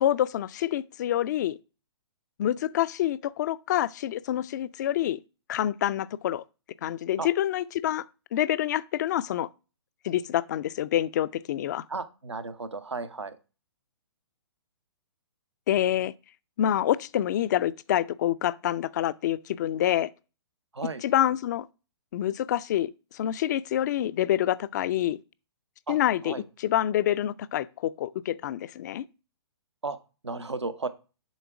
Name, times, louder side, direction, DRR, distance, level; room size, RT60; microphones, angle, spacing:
voice 1, 0.0-1.6 2.4-5.2 5.5-6.4 6.8-8.0 8.3-9.5 10.0-11.8 15.7-16.1 16.6-20.1 21.0-21.7 22.1-25.2 25.9-29.0, left 12 dB, 40° left, 0.4 m, -27 dB
voice 2, 11.9-13.4 20.7-21.0 25.9-26.0 26.2-26.4 29.8-30.0 30.2-30.9, right 3 dB, 90° right, 0.8 m, -34 dB
7.1 x 3.6 x 5.9 m
figure-of-eight pair, 130°, 14 cm